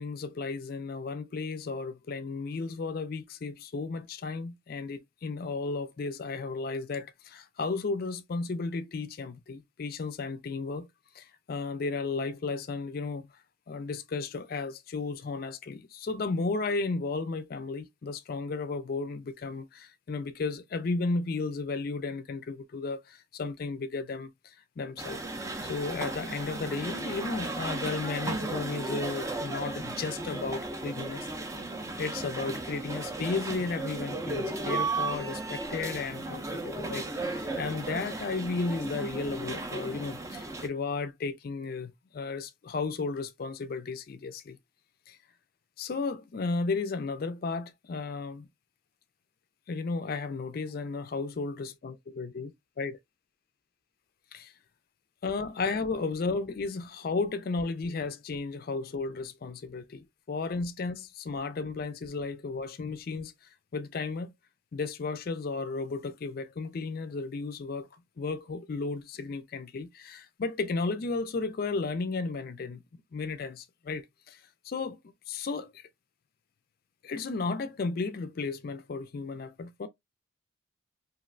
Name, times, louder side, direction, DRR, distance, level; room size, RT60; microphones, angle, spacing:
voice 1, 0.0-10.9 11.1-13.3 13.7-25.2 25.6-31.3 32.0-44.6 45.1-45.2 45.8-48.5 49.7-53.0 54.3-54.5 55.2-64.3 64.7-72.8 73.1-75.0 75.3-75.9 77.0-79.9, left 4 dB, 45° left, 0.4 m, -34 dB
sound 1, 25.0-40.7, right 2 dB, 15° right, 0.4 m, -35 dB
3.0 x 2.5 x 2.5 m
head